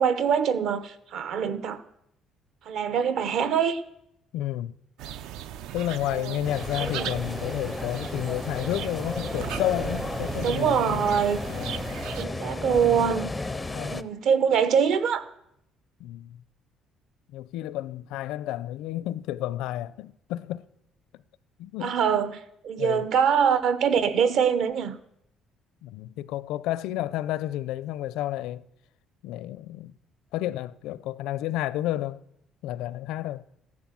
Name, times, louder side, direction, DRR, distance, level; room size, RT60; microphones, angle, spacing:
voice 1, 0.0-1.8 2.6-3.8 6.1-6.5 7.0-7.1 10.4-11.4 12.2-13.3 13.9-15.2 21.8-25.0, right 7 dB, 55° right, 0.9 m, -24 dB
voice 2, 4.3-4.8 5.7-11.0 11.4-11.9 12.6-13.0 13.4-14.1 16.0-16.4 17.3-20.6 21.6-22.0 22.8-23.1 25.8-28.6 29.2-30.0 30.3-32.2 32.6-33.4, left 13 dB, 85° left, 0.5 m, -31 dB
sound 1, 5.0-12.3, right 10 dB, 70° right, 0.6 m, -37 dB
sound 2, 6.4-14.0, left 2 dB, 10° left, 0.5 m, -33 dB
14.5 x 11.0 x 7.5 m
cardioid pair, 180°, 0 cm